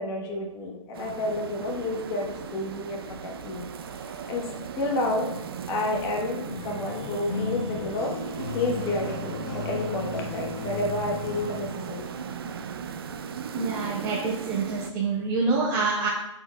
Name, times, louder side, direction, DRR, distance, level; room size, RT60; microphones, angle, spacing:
voice 1, 0.0-3.7 4.1-4.5 4.8-5.3 5.7-8.1 8.5-12.0, left 2 dB, 20° left, 0 dB, 1.0 m, -30 dB
sound 1, 0.9-14.9, right 7 dB, 45° right, 0.5 m, -37 dB
sound 2, 6.5-11.7, left 4 dB, 45° left, 0.9 m, -35 dB
voice 2, 13.5-16.1, right 4 dB, 15° right, -4 dB, 0.8 m, -26 dB
10.5 x 4.5 x 2.2 m, 0.88 s
hypercardioid pair, 145°, 17 cm